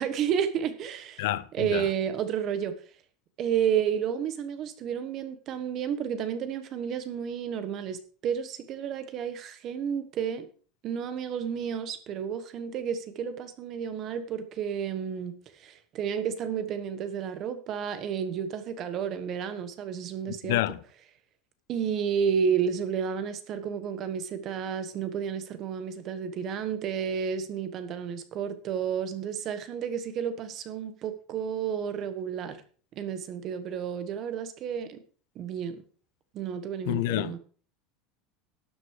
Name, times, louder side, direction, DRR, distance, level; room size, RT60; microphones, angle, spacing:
voice 1, 0.0-1.2 1.5-2.8 3.4-10.5 10.8-20.6 21.7-32.6 32.9-35.0 35.3-35.8 36.3-37.4, right 8 dB, 30° right, 1.3 m, -31 dB
voice 2, 1.2-1.8 20.4-20.8 36.9-37.4, left 16 dB, 70° left, 0.7 m, -28 dB
12.5 x 7.8 x 4.9 m
supercardioid pair, 175°, 0 cm